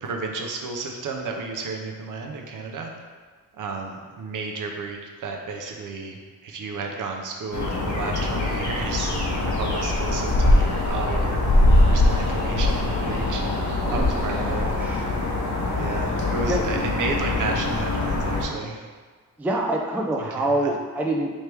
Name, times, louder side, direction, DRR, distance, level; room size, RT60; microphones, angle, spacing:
voice 1, 0.0-2.9 3.6-6.2 6.4-11.4 11.8-13.4 13.9-14.6 15.1-15.2 15.8-18.8 20.2-20.7, right 4 dB, 65° right, 2 dB, 0.7 m, -32 dB
sound 1, 7.5-18.5, left 2 dB, 55° left, 0.9 m, -22 dB
voice 2, 13.8-15.1 16.4-16.6 19.4-21.3, right 1 dB, 5° right, 0 dB, 0.3 m, -26 dB
3.3 x 3.3 x 4.5 m, 1.5 s
wide cardioid pair, 130°, 34 cm